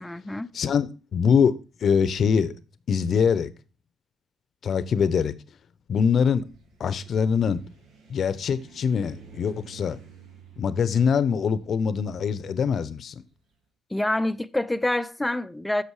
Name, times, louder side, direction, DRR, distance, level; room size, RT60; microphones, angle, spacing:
voice 1, 0.0-0.5 13.9-15.8, left 1 dB, 10° left, 0.6 m, -26 dB
voice 2, 0.5-1.5 1.8-2.5 2.9-3.5 4.6-5.3 5.9-6.4 6.8-7.6 8.1-10.0 10.6-13.1, left 6 dB, 60° left, 0.7 m, -23 dB
sound 1, 6.2-13.4, right 5 dB, 90° right, 2.3 m, -51 dB
8.3 x 6.4 x 4.8 m
cardioid pair, 90°, 0 cm